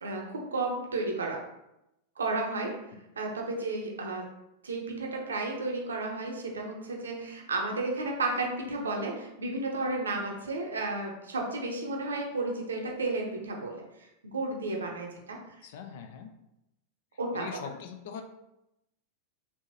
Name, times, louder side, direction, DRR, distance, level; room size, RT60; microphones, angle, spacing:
voice 1, 0.0-1.4 2.2-2.8 3.2-4.3 4.6-15.4 17.2-17.5, right 2 dB, 70° right, 0 dB, 0.7 m, -33 dB
voice 2, 15.6-16.3 17.3-18.2, left 7 dB, 55° left, 6 dB, 0.4 m, -41 dB
3.4 x 2.8 x 2.6 m, 0.88 s
figure-of-eight pair, 90°, 0 cm